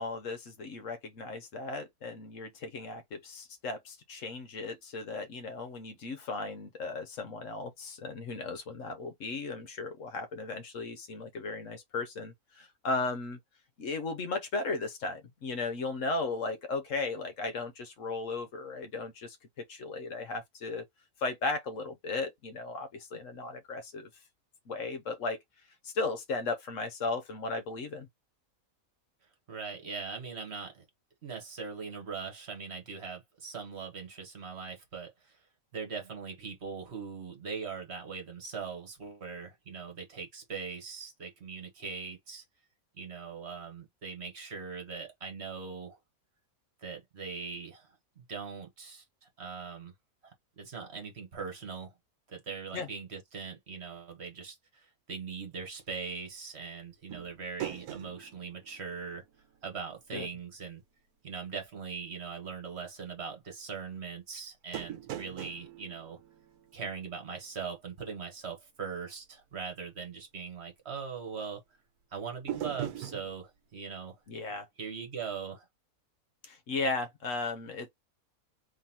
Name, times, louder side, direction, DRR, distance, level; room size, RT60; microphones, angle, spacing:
voice 1, 0.0-13.4 13.8-19.4 19.7-20.8 21.2-24.1 24.7-25.4 25.8-28.1 52.7-52.9 60.1-60.3 74.3-74.7 76.4-77.9, left 3 dB, 60° left, 1.2 m, -36 dB
voice 2, 29.5-30.8 31.2-35.4 35.7-42.4 43.0-46.0 46.8-47.9 48.2-49.9 50.2-51.9 52.3-59.2 59.6-60.8 61.2-66.2 66.7-71.6 72.1-74.2 74.8-75.7, right 5 dB, 45° right, 1.5 m, -41 dB
sound 1, 57.1-59.8 60.0-60.1 64.7-67.2 72.5-73.3, right 11 dB, 80° right, 1.2 m, -41 dB
3.8 x 3.1 x 2.8 m
omnidirectional pair, 1.6 m